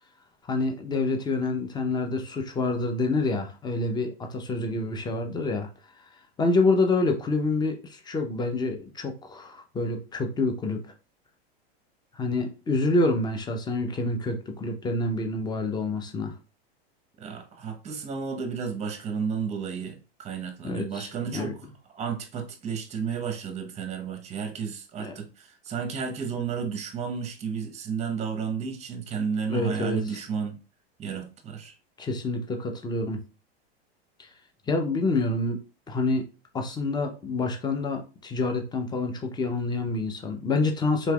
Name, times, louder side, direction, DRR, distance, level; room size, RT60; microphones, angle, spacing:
voice 1, 0.5-5.7 6.4-10.9 12.1-16.3 20.6-21.5 25.0-25.2 29.5-30.2 32.0-33.2 34.2-34.3 34.7-35.6 35.9-36.3 36.5-41.1, left 2 dB, 15° left, 0.5 m, -27 dB
voice 2, 17.2-21.6 21.9-30.6 31.0-31.8, right 6 dB, 20° right, 0.7 m, -32 dB
3.3 x 3.0 x 2.3 m
hypercardioid pair, 115°, 32 cm